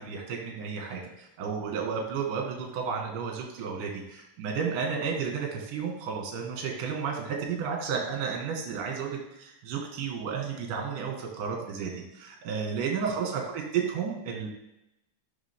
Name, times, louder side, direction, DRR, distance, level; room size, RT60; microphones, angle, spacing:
voice 1, 0.0-14.5, right 6 dB, 55° right, 0 dB, 2.8 m, -32 dB
12.5 x 6.2 x 3.8 m, 0.88 s
omnidirectional pair, 5.7 m